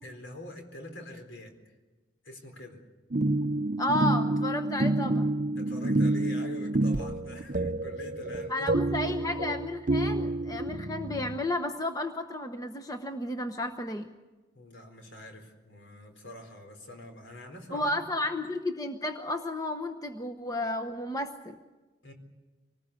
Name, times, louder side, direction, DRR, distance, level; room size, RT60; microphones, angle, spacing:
voice 1, 0.0-1.5 2.2-2.8 5.6-9.2 14.5-18.0 22.0-22.1, left 1 dB, 65° left, 4 dB, 4.2 m, -45 dB
sound 1, 3.1-11.4, right 2 dB, 40° right, 0.7 m, -28 dB
voice 2, 3.8-5.3 8.5-14.1 17.7-21.6, left 1 dB, 20° left, 6 dB, 0.9 m, -32 dB
25.0 x 19.5 x 8.4 m, 1.2 s
head